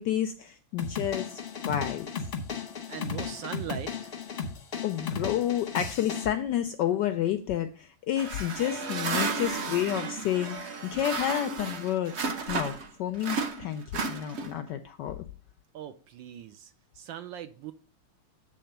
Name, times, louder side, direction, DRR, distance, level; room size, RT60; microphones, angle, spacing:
voice 1, 0.0-1.4 1.7-2.1 4.8-12.2 12.5-15.2, left 11 dB, 80° left, 1.0 m, -30 dB
sound 1, 0.8-6.3, left 5 dB, 45° left, 0.8 m, -35 dB
voice 2, 2.9-4.2 15.7-17.7, right 10 dB, 75° right, 1.1 m, -40 dB
sound 2, 8.2-12.9 13.2-14.7, right 4 dB, 55° right, 0.7 m, -33 dB
8.7 x 3.5 x 6.5 m
omnidirectional pair, 2.4 m